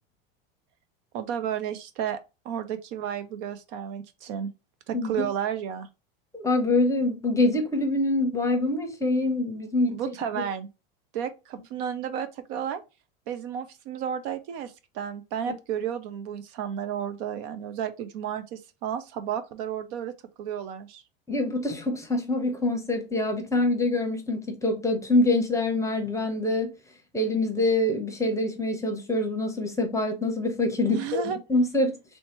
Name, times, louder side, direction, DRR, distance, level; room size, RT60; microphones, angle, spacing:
voice 1, 1.1-2.2 2.4-4.5 4.9-5.9 9.9-10.7 11.1-12.8 13.3-21.0 30.9-31.4, right 9 dB, 60° right, 0.7 m, -32 dB
voice 2, 4.9-5.3 6.3-10.0 21.3-26.7 27.1-31.2 31.5-31.9, left 2 dB, 10° left, 0.8 m, -25 dB
3.3 x 2.8 x 3.0 m
supercardioid pair, 110°, 30 cm